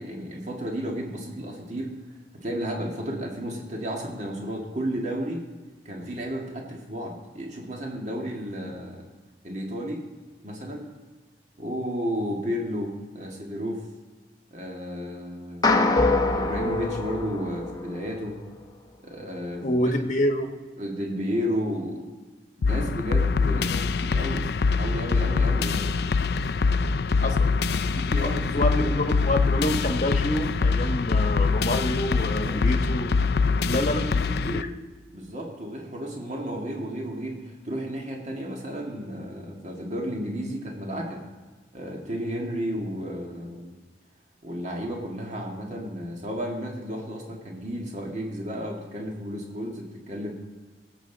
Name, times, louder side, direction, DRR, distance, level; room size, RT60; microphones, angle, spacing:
voice 1, 0.0-1.9 2.4-5.5 5.9-9.1 9.4-10.1 10.4-10.9 11.6-13.8 14.5-15.9 16.3-18.4 19.0-19.8 20.8-22.1 22.6-24.5 24.8-26.0 27.2-27.3 27.9-28.9 32.3-32.6 35.1-41.2 41.7-43.8 44.4-50.3, equal, 40° right, 1 dB, 1.9 m, -33 dB
sound 1, 15.6-18.1, left 2 dB, 20° left, 0.7 m, -24 dB
voice 2, 19.6-20.5 23.5-23.8 27.2-27.5 28.2-33.1 33.6-34.7, left 1 dB, 45° left, 5 dB, 1.1 m, -27 dB
sound 2, 22.6-34.6, left 4 dB, 65° left, 0.4 m, -24 dB
17.0 x 7.8 x 4.0 m, 1.4 s
head